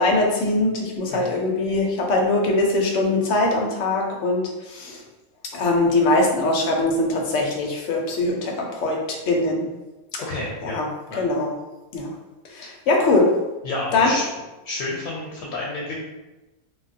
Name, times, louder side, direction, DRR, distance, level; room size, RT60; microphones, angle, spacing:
voice 1, 0.0-5.0 5.5-9.7 10.1-10.2 10.6-10.9 11.2-11.5 11.9-12.1 12.5-13.3 13.9-14.2, left 2 dB, 65° left, 0 dB, 0.9 m, -22 dB
voice 2, 10.2-10.8 11.1-11.2 13.6-14.3 14.6-16.0, left 2 dB, 85° left, -3 dB, 1.1 m, -30 dB
3.3 x 2.4 x 2.6 m, 1.1 s
omnidirectional pair, 1.5 m